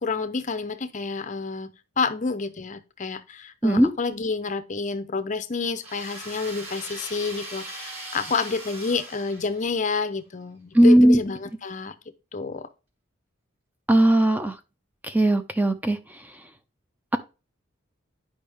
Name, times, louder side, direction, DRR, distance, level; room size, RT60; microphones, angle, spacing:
voice 1, 0.0-11.9 12.3-12.7, left 4 dB, 40° left, 0.7 m, -29 dB
sound 1, 5.8-9.9, right 2 dB, 30° right, 2.7 m, -39 dB
voice 2, 10.7-11.2 13.9-14.5 15.1-16.0, right 1 dB, 10° right, 0.5 m, -17 dB
10.0 x 5.4 x 3.5 m
head